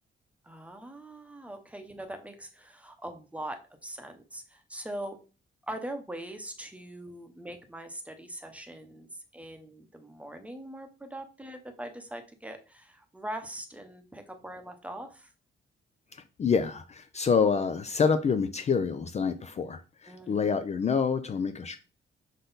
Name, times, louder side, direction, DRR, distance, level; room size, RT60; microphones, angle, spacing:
voice 1, 0.4-5.2 5.7-15.3 20.1-20.5, right 1 dB, 5° right, 0.8 m, -42 dB
voice 2, 16.1-21.8, left 5 dB, 35° left, 0.4 m, -27 dB
6.6 x 4.0 x 4.0 m
wide cardioid pair, 165°, 20 cm